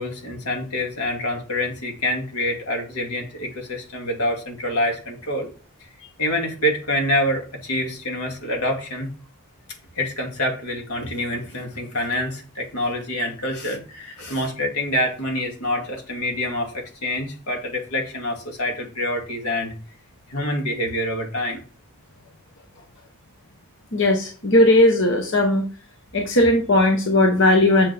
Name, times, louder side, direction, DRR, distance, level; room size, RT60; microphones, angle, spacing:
voice 1, 0.0-5.5 5.8-5.9 6.2-9.1 10.0-19.8 20.3-21.6 26.2-26.3, left 1 dB, 85° left, 2 dB, 2.2 m, -26 dB
voice 2, 23.9-25.6 26.1-27.9, left 1 dB, 55° left, 3 dB, 1.1 m, -17 dB
7.2 x 6.8 x 3.4 m, 0.37 s
head